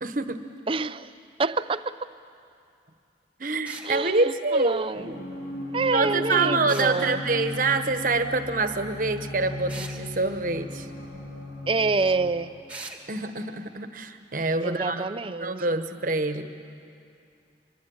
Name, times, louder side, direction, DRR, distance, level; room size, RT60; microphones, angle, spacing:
voice 1, 0.0-0.4 3.4-5.1 5.9-10.9 13.1-15.1 15.4-16.4, right 3 dB, 45° right, 8 dB, 1.2 m, -26 dB
voice 2, 0.7-1.1 1.4-2.0 3.8-5.1 5.7-7.2 11.7-12.5 14.6-15.8, right 3 dB, 30° right, 13 dB, 0.5 m, -27 dB
sound 1, 3.7-3.9 6.7-7.0 9.7-10.0 12.7-13.0, right 3 dB, 10° right, 1.6 m, -39 dB
sound 2, 4.9-12.3, left 1 dB, 70° left, 6.3 m, -36 dB
24.0 x 23.0 x 8.9 m, 2.5 s
head